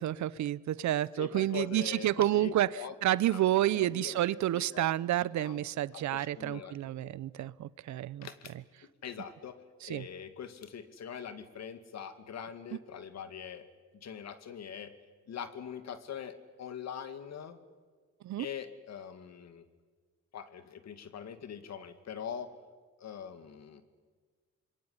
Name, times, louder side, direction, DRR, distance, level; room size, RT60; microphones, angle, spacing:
voice 1, 0.0-8.3 9.8-10.1 18.2-18.5, right 13 dB, 70° right, 20 dB, 0.8 m, -30 dB
voice 2, 1.2-3.0 3.3-3.4 3.7-4.2 4.5-4.9 5.4-5.7 5.9-6.7 7.0-7.2 8.2-8.5 9.0-9.6 9.8-13.7 14.0-14.9 15.3-17.6 18.4-19.6 20.3-22.5 23.0-23.8, left 8 dB, 60° left, 10 dB, 2.4 m, -43 dB
26.0 x 22.0 x 9.8 m, 1.5 s
cardioid pair, 90°, 30 cm